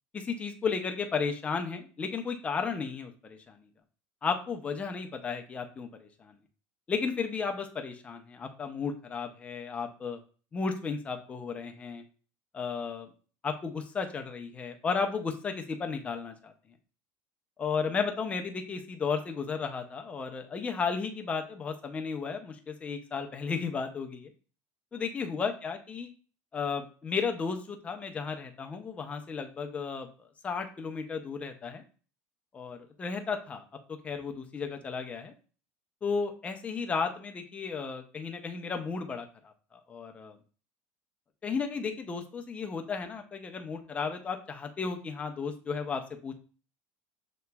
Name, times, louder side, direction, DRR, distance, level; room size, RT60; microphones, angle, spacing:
voice 1, 0.1-3.6 4.2-6.4 6.9-10.2 10.5-12.0 12.5-13.1 13.4-16.5 17.6-24.3 24.9-26.1 26.5-31.8 32.5-33.6 34.0-35.3 36.0-39.3 39.7-40.4 41.4-46.3, left 5 dB, 15° left, 4 dB, 0.5 m, -34 dB
6.7 x 2.9 x 2.3 m, 0.38 s
cardioid pair, 155°, 7 cm